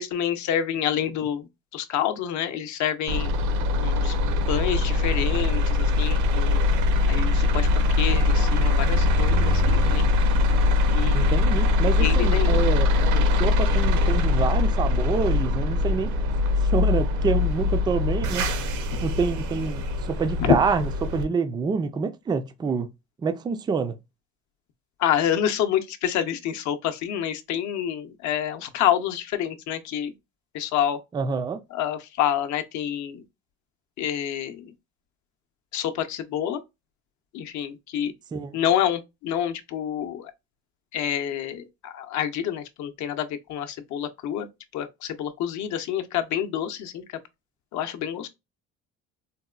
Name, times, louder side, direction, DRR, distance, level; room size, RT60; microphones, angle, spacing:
voice 1, 0.0-3.3 3.8-4.1 4.5-6.6 7.1-7.7 8.0-10.0 10.9-11.6 11.9-12.6 20.4-20.5 25.0-30.1 30.5-31.0 31.7-33.2 34.0-34.7 35.7-36.6 37.3-38.1 38.5-40.3 40.9-44.5 44.7-47.2 47.7-48.3, left 10 dB, 65° left, 0.6 m, -27 dB
sound 1, 3.1-21.2, left 3 dB, 65° right, 0.6 m, -22 dB
voice 2, 11.1-16.1 16.6-18.5 19.0-22.9 23.2-24.0 31.1-31.6 38.3-38.6, right 5 dB, 15° right, 0.3 m, -27 dB
4.0 x 2.1 x 2.3 m
cardioid pair, 125°, 31 cm